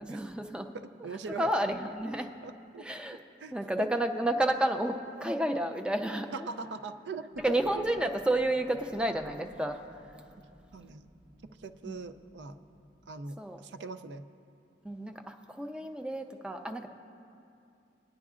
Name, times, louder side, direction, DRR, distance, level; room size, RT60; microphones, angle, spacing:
voice 1, 0.0-0.7 1.4-2.3 2.8-3.2 3.5-6.5 7.4-9.8 11.8-12.0 13.4-13.6 14.8-16.9, right 1 dB, 5° right, 5 dB, 0.4 m, -31 dB
voice 2, 0.7-1.5 2.4-2.8 3.4-3.9 6.3-7.4 7.7-7.8 10.7-11.1 11.4-12.6 13.1-14.3, right 4 dB, 75° right, 10 dB, 0.4 m, -41 dB
sound 1, 7.3-13.1, equal, 30° right, 1.5 m, -57 dB
19.0 x 10.5 x 2.4 m, 2.6 s
head